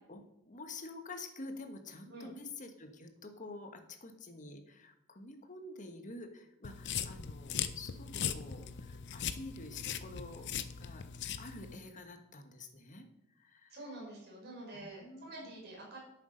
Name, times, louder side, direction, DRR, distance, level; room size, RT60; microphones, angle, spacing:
voice 1, 0.5-10.5 10.8-11.0 11.4-13.1 13.3-13.8 14.7-15.6, left 2 dB, 40° left, 6 dB, 1.3 m, -48 dB
sound 1, 6.6-11.8, left 8 dB, 60° left, 0.6 m, -39 dB
voice 2, 13.7-16.0, right 2 dB, 55° right, -2 dB, 5.1 m, -47 dB
10.5 x 8.3 x 5.1 m, 0.87 s
head